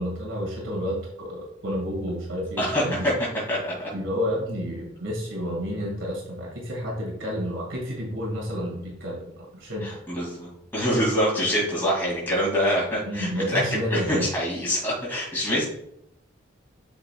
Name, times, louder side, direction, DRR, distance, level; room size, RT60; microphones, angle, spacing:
voice 1, 0.0-3.1 3.9-9.2 9.5-9.9 13.1-14.3, equal, 80° right, -2 dB, 2.0 m, -30 dB
voice 2, 2.6-3.9 9.8-15.6, equal, 10° left, -6 dB, 2.2 m, -25 dB
8.1 x 5.0 x 2.3 m, 0.77 s
head